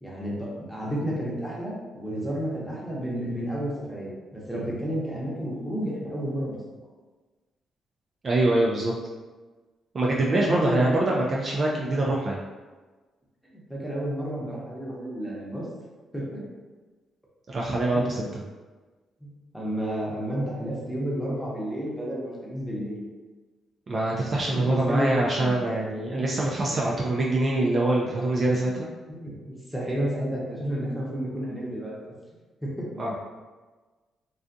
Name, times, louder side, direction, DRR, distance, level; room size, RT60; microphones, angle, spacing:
voice 1, 0.0-6.6 10.3-11.1 11.7-11.8 13.5-15.7 16.1-16.4 18.0-18.3 19.2-23.0 24.5-25.5 26.1-26.4 29.1-32.1 32.6-33.0, equal, ahead, -6 dB, 0.8 m, -31 dB
voice 2, 8.2-9.0 9.9-12.4 17.5-18.3 23.9-28.9 33.0-33.2, right 2 dB, 40° right, -3 dB, 0.3 m, -24 dB
2.4 x 2.3 x 2.5 m, 1.3 s
cardioid pair, 85°, 0 cm